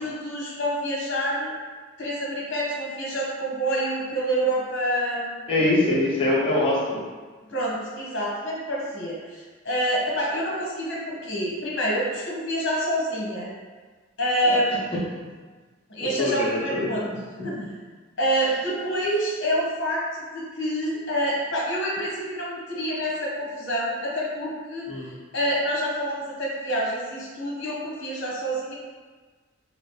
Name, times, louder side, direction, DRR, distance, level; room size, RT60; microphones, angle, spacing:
voice 1, 0.0-1.5 2.0-5.6 7.5-13.5 14.2-14.8 15.9-17.0 17.4-17.6 18.2-24.9 25.3-28.7, equal, 65° left, -5 dB, 1.0 m, -27 dB
voice 2, 5.5-7.0 14.4-14.6 16.2-17.2 17.5-17.7 24.9-25.1, left 2 dB, 30° left, -6 dB, 0.7 m, -24 dB
3.0 x 2.6 x 3.2 m, 1.4 s
head